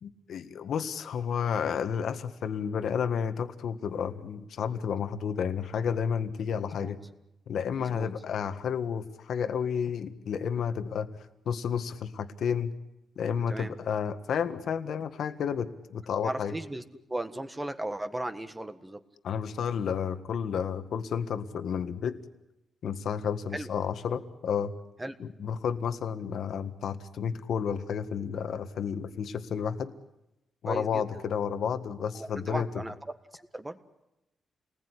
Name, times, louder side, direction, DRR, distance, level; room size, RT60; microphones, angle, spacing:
voice 1, 0.0-7.0 7.5-11.1 11.4-12.7 13.1-16.5 19.2-22.2 22.8-24.7 25.2-29.9 30.6-32.7, left 7 dB, 70° left, 10 dB, 1.7 m, -31 dB
voice 2, 6.6-6.9 7.8-8.1 13.5-13.7 16.2-16.8 17.1-19.0 23.5-23.7 25.0-25.1 30.6-31.0 32.1-32.9 33.3-33.8, right 1 dB, 10° right, 9 dB, 1.5 m, -36 dB
29.0 x 20.0 x 10.0 m, 0.91 s
wide cardioid pair, 140°, 0 cm